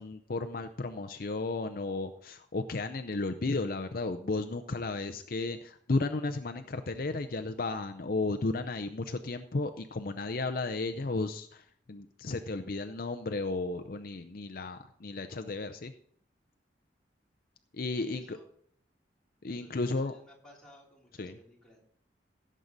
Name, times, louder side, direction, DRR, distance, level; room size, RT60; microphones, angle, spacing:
voice 1, 0.0-15.9 17.7-18.4 19.4-20.1 21.2-21.4, left 3 dB, 50° left, 8 dB, 0.6 m, -34 dB
voice 2, 17.8-18.4 19.5-21.8, equal, 5° left, -5 dB, 3.4 m, -58 dB
16.5 x 7.5 x 4.0 m, 0.63 s
head